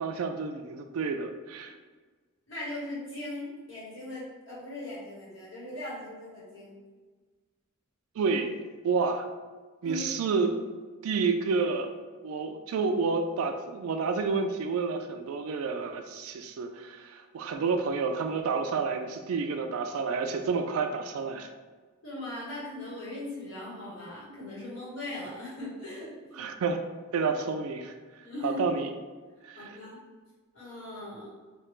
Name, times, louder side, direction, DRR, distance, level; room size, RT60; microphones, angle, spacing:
voice 1, 0.0-1.7 8.2-8.5 8.8-9.3 9.8-10.6 11.0-11.9 12.2-21.5 26.4-26.8 27.1-28.9 29.4-29.8, right 4 dB, 75° right, 6 dB, 0.3 m, -30 dB
voice 2, 2.5-6.8 9.8-10.0 22.0-26.4 28.2-28.6 29.6-30.0 30.5-31.3, left 1 dB, 60° left, -8 dB, 1.3 m, -39 dB
3.2 x 2.4 x 3.1 m, 1.4 s
head